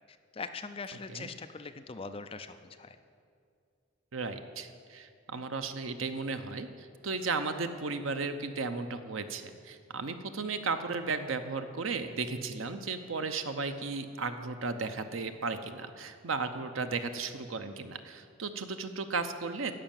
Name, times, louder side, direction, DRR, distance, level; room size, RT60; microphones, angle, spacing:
voice 1, 0.1-3.0, left 4 dB, 30° left, 9 dB, 0.5 m, -42 dB
voice 2, 4.1-19.7, right 4 dB, 85° right, 8 dB, 0.8 m, -35 dB
12.5 x 5.6 x 9.0 m, 2.3 s
head